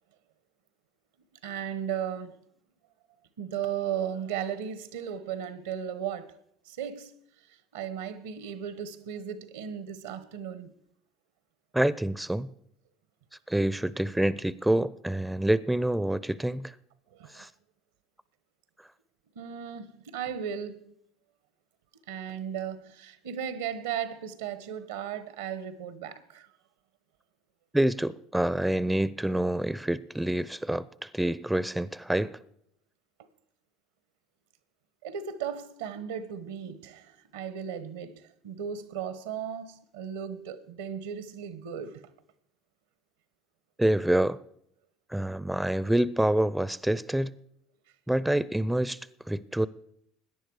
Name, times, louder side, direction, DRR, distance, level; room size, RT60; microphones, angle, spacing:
voice 1, 1.4-2.3 3.4-6.3 6.6-7.1 7.7-10.7 17.2-17.4 19.3-20.9 22.1-26.5 35.0-42.1, right 8 dB, 80° right, 1.2 m, -36 dB
voice 2, 11.7-12.5 13.5-16.7 17.3-17.5 27.7-32.4 43.8-44.4 45.1-47.3 48.1-49.0 49.3-49.7, right 1 dB, 5° right, 0.5 m, -27 dB
17.5 x 10.5 x 4.8 m
hypercardioid pair, 70°, 0 cm